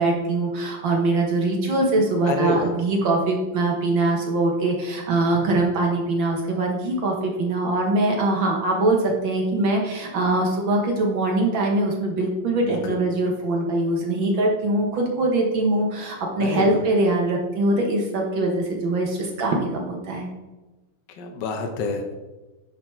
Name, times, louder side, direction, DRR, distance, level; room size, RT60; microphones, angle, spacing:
voice 1, 0.0-20.3, right 2 dB, 65° right, 0 dB, 1.9 m, -22 dB
voice 2, 2.3-2.8 12.6-13.0 16.4-16.8 21.2-22.1, left 3 dB, 65° left, 3 dB, 1.4 m, -27 dB
10.0 x 4.0 x 4.5 m, 1.1 s
omnidirectional pair, 2.3 m